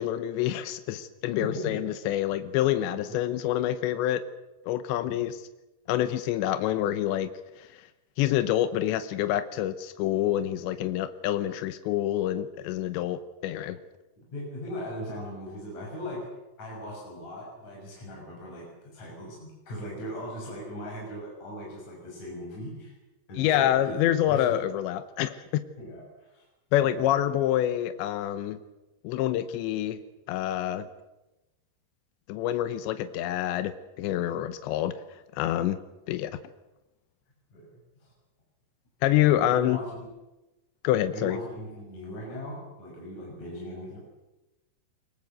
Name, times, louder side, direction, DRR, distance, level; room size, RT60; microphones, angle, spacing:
voice 1, 0.0-4.2 4.7-5.4 5.9-7.3 7.6-7.9 8.2-13.8 23.4-25.6 26.7-28.6 29.0-30.0 30.3-30.9 32.3-34.9 35.3-35.8 36.1-36.3 39.0-39.8 40.8-41.4, left 12 dB, 85° left, 11 dB, 3.2 m, -27 dB
voice 2, 1.4-1.7 2.9-3.0 5.0-5.2 14.3-16.3 16.6-22.9 23.3-24.5 25.8-26.4 26.8-27.2 37.5-38.1 39.2-40.0 41.1-44.0, equal, 40° left, -2 dB, 7.7 m, -39 dB
24.5 x 22.0 x 7.9 m, 1.0 s
omnidirectional pair, 5.0 m